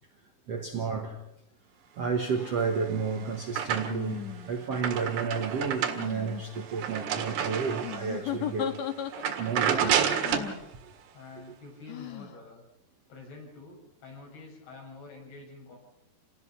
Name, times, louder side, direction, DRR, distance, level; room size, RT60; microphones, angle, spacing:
voice 1, 0.5-1.2 2.0-10.0, right 5 dB, 60° right, 1.7 m, -31 dB
sound 1, 2.3-2.6 3.9-4.7 5.9-6.4 7.8-9.5 10.2-10.7 11.9-12.4, left 9 dB, 55° left, 2.3 m, -36 dB
sound 2, 2.6-4.2 4.5-8.2 8.6-8.8 9.1-10.6, right 8 dB, 75° right, 3.8 m, -30 dB
voice 2, 11.1-12.6 13.1-15.8, left 3 dB, 70° left, 8.3 m, -47 dB
28.5 x 19.0 x 5.7 m
omnidirectional pair, 4.8 m